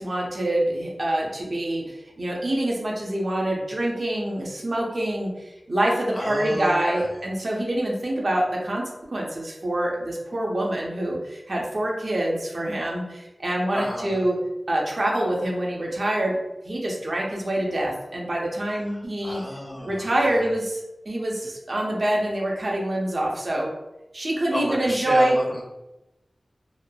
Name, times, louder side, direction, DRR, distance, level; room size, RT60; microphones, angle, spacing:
voice 1, 0.0-1.8 2.2-5.3 5.7-8.8 9.1-14.4 14.7-16.4 16.7-19.4 19.8-23.7 24.1-25.4, right 1 dB, 60° right, -2 dB, 0.6 m, -25 dB
voice 2, 6.1-7.1 13.7-14.2 18.7-20.5 24.5-25.6, equal, 25° left, -3 dB, 0.8 m, -32 dB
3.0 x 2.0 x 2.2 m, 0.96 s
wide cardioid pair, 70°, 0 cm